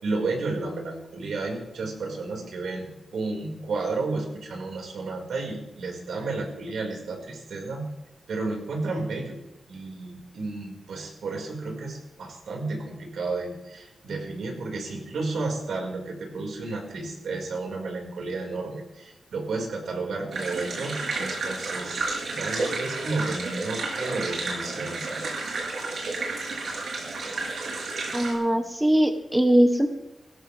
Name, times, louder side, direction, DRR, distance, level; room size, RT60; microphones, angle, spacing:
voice 1, 0.0-7.9 8.3-9.4 9.7-25.2, right 3 dB, 85° right, 0 dB, 5.1 m, -32 dB
sound 1, 20.3-28.3, right 3 dB, 70° right, 7.5 m, -31 dB
voice 2, 28.1-29.9, right 1 dB, 5° right, 6 dB, 1.2 m, -21 dB
21.5 x 17.5 x 3.5 m, 0.90 s
wide cardioid pair, 150°, 0 cm